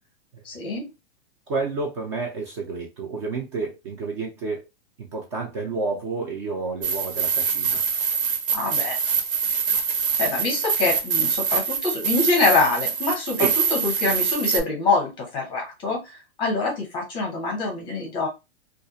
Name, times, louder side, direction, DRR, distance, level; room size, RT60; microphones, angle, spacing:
voice 1, 0.4-0.9 8.5-9.0 10.2-18.3, left 3 dB, 15° left, 0.7 m, -25 dB
voice 2, 1.5-4.6 5.0-7.8 13.4-13.5, right 4 dB, 30° right, 0.5 m, -30 dB
sound 1, 6.8-14.6, right 6 dB, 55° right, 0.8 m, -24 dB
2.4 x 2.2 x 2.7 m
supercardioid pair, 165°, 31 cm